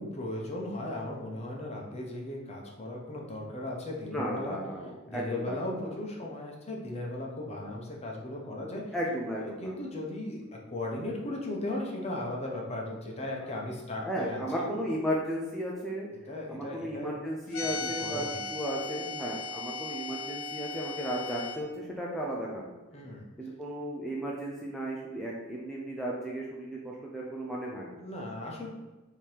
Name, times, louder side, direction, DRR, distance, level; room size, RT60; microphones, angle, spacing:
voice 1, 0.0-4.6 5.1-8.8 9.4-10.4 10.7-15.1 16.1-17.1 17.8-18.4 22.9-23.2 28.0-28.7, left 1 dB, 30° left, -1 dB, 0.8 m, -37 dB
voice 2, 4.1-5.9 8.9-9.7 14.0-16.1 16.5-22.8 23.4-28.0, equal, ahead, -4 dB, 0.4 m, -35 dB
sound 1, 17.5-21.6, left 3 dB, 85° left, 0.5 m, -37 dB
3.5 x 2.9 x 4.6 m, 1.1 s
head